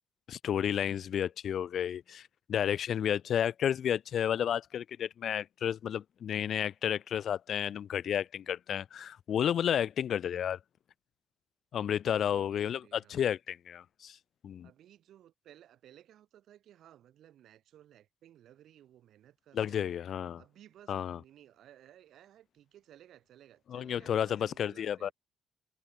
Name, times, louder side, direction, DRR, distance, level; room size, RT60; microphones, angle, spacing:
voice 1, 0.3-10.6 11.7-14.2 14.4-14.7 19.5-20.4 20.9-21.2 23.7-25.1, left 9 dB, 65° left, 0.4 m, -32 dB
voice 2, 12.1-13.3 14.6-20.0 20.4-25.1, right 11 dB, 75° right, 5.7 m, -58 dB
cardioid pair, 90°, 0 cm